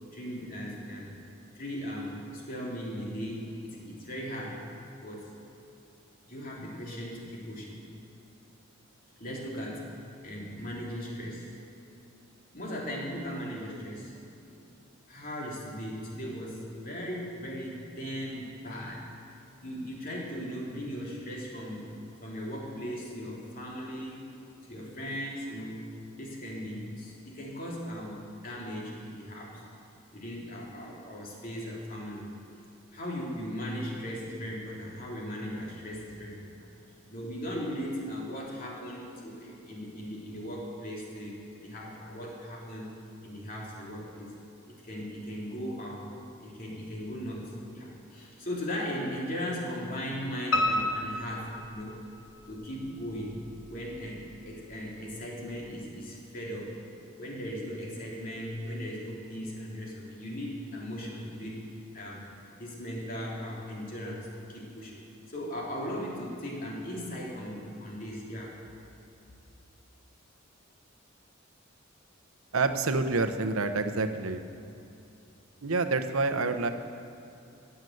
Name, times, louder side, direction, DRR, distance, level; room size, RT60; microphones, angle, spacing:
voice 1, 0.1-1.2 1.5-4.6 5.0-5.2 6.3-7.8 9.2-9.9 10.2-11.5 12.5-14.2 15.1-19.0 19.6-21.9 22.2-24.3 24.6-25.8 26.1-29.6 30.1-32.3 32.9-36.7 37.1-42.9 43.2-44.3 44.8-46.1 46.4-52.1 52.5-56.7 57.2-61.6 61.9-62.3 62.6-68.5, equal, 40° left, -3 dB, 3.0 m, -38 dB
Piano, 50.5-52.4 52.9-53.7 54.1-54.2 54.6-54.7 55.0-55.1, left 1 dB, 90° left, 1.2 m, -30 dB
voice 2, 72.5-74.4 75.6-76.7, right 3 dB, 90° right, 8 dB, 0.9 m, -27 dB
17.0 x 6.9 x 7.9 m, 2.8 s
head